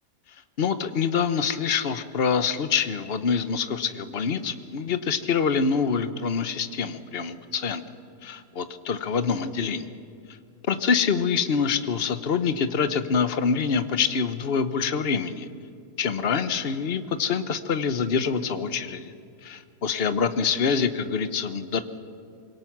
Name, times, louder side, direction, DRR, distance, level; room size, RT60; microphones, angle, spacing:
voice 1, 0.6-7.8 8.2-9.9 10.7-15.5 16.0-19.1 19.4-21.8, left 6 dB, 45° left, 11 dB, 1.0 m, -25 dB
25.5 x 22.5 x 6.1 m, 2.4 s
omnidirectional pair, 1.7 m